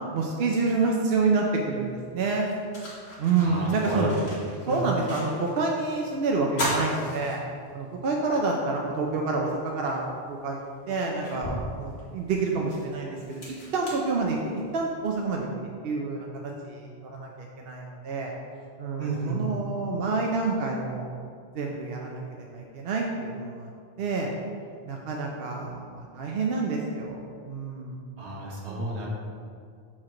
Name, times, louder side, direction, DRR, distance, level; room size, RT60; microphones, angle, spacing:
voice 1, 0.1-2.5 3.2-4.1 4.7-7.5 7.7-10.6 10.9-15.5 15.8-18.3 18.8-21.1 21.5-23.7 24.0-24.3 24.8-27.2 27.4-28.0 28.7-28.9, right 3 dB, 65° right, 0 dB, 0.8 m, -28 dB
sound 1, 1.7-1.8 2.3-5.7 6.0-6.1 6.5-8.0 8.4-8.5 9.9-10.0 10.6-14.8, left 1 dB, 80° left, 1.8 m, -36 dB
voice 2, 3.4-4.0 4.6-4.8 19.0-19.4 28.2-29.1, right 2 dB, 90° right, -4 dB, 1.3 m, -32 dB
4.8 x 4.4 x 5.9 m, 2.2 s
omnidirectional pair, 1.1 m